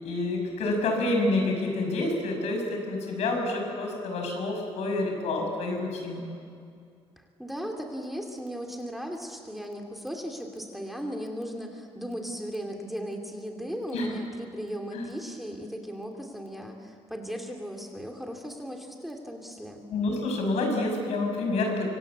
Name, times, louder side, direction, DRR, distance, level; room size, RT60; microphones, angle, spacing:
voice 1, 0.0-6.3 13.9-14.1 14.9-15.0 19.9-21.9, left 2 dB, 90° left, 2 dB, 6.5 m, -28 dB
voice 2, 7.2-19.9, equal, ahead, 2 dB, 2.5 m, -37 dB
25.5 x 24.5 x 8.3 m, 2.3 s
cardioid pair, 175°, 11 cm